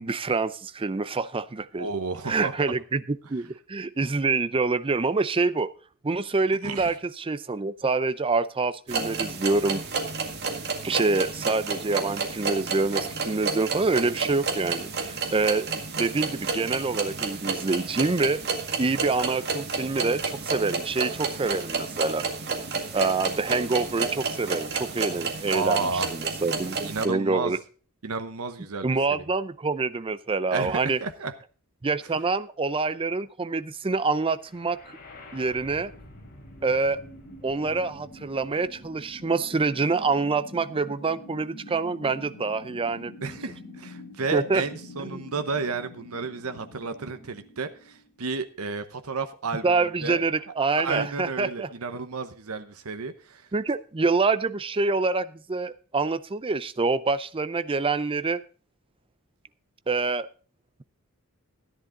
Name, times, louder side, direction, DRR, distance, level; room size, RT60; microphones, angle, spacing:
voice 1, 0.0-1.9 2.3-5.7 6.0-9.8 10.8-15.7 16.0-18.4 18.8-22.2 22.9-27.6 28.8-31.0 31.8-34.8 35.3-35.9 36.6-37.0 37.4-43.1 44.3-44.6 45.0-45.2 49.6-51.7 53.5-58.4 59.9-60.3, right 3 dB, 25° right, 14 dB, 0.5 m, -26 dB
voice 2, 1.8-2.5 6.6-6.9 25.5-26.1 26.8-27.5 28.0-29.2 30.5-31.3 43.2-50.2 50.8-53.5, right 4 dB, 80° right, 9 dB, 1.0 m, -32 dB
sound 1, 8.9-27.1, right 4 dB, 50° right, 2.0 m, -30 dB
sound 2, 34.4-48.4, left 1 dB, 45° left, 3.2 m, -46 dB
14.0 x 10.5 x 3.9 m, 0.38 s
head